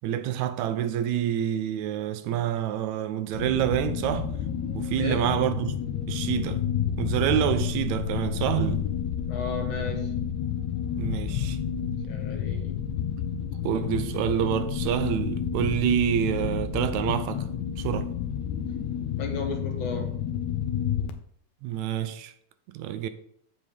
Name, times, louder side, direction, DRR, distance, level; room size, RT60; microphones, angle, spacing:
voice 1, 0.0-4.4 4.7-5.7 6.1-6.6 7.0-8.9 10.9-11.6 13.6-17.5 17.8-18.1 21.6-22.3 22.7-23.1, right 11 dB, 80° right, 1.9 m, -27 dB
sound 1, 3.3-21.1, left 8 dB, 80° left, 2.0 m, -30 dB
voice 2, 9.3-10.1 12.0-12.8 19.1-20.1, left 3 dB, 55° left, 1.6 m, -34 dB
8.1 x 7.0 x 3.5 m
omnidirectional pair, 3.3 m